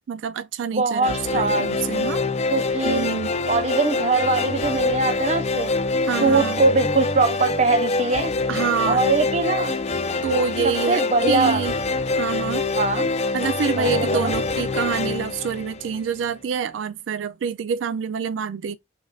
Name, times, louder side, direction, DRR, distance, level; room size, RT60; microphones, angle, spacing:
voice 1, 0.1-2.2 2.8-3.3 6.1-6.6 8.5-9.0 10.2-11.8 12.2-12.6 13.3-18.8, right 6 dB, 85° right, 0.3 m, -26 dB
voice 2, 0.7-1.7 2.5-3.1 3.5-5.7 6.2-8.3 8.8-9.7 10.6-11.6 12.8-13.1 13.8-14.3, right 3 dB, 35° right, 0.7 m, -22 dB
sound 1, 1.0-16.3, left 3 dB, 35° left, 0.4 m, -25 dB
6.3 x 2.5 x 2.3 m
head